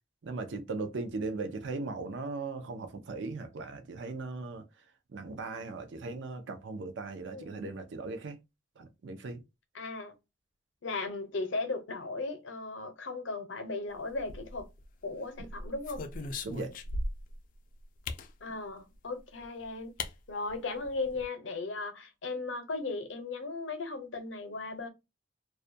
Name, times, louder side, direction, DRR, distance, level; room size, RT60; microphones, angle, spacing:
voice 1, 0.2-4.7 5.1-8.4 8.8-9.4 16.4-16.8, right 3 dB, 65° right, 0.5 m, -38 dB
voice 2, 7.3-7.7 9.7-10.1 10.8-14.7 15.0-16.0 18.4-19.9 20.3-24.9, left 3 dB, 75° left, 0.7 m, -37 dB
sound 1, 14.2-14.9 15.4-17.4 18.1-18.3 19.4-19.5 20.0-20.1 20.5-20.6 20.8-21.3, left 2 dB, 45° left, 0.3 m, -38 dB
2.3 x 2.1 x 2.5 m
head